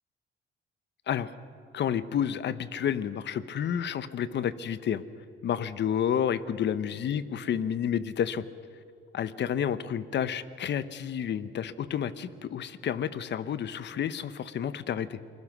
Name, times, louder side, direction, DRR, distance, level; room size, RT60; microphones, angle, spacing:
voice 1, 1.7-5.0 5.4-8.4 9.1-15.2, left 9 dB, 60° left, 14 dB, 1.1 m, -30 dB
28.5 x 20.0 x 6.2 m, 2.6 s
cardioid pair, 90°, 20 cm